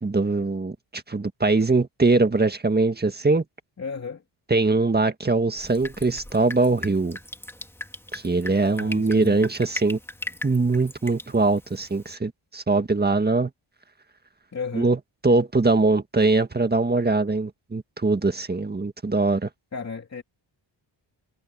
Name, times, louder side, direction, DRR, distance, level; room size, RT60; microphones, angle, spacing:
voice 1, 0.0-3.4 4.5-7.2 8.1-10.0 10.4-13.5 14.7-15.0 15.2-19.5, right 3 dB, 20° right, 1.8 m, -22 dB
voice 2, 3.8-4.2 8.8-9.5 14.5-14.9 19.7-20.2, left 5 dB, 35° left, 2.9 m, -34 dB
Drip, 5.6-12.1, left 1 dB, 5° left, 2.2 m, -39 dB
cardioid pair, 110°, 45 cm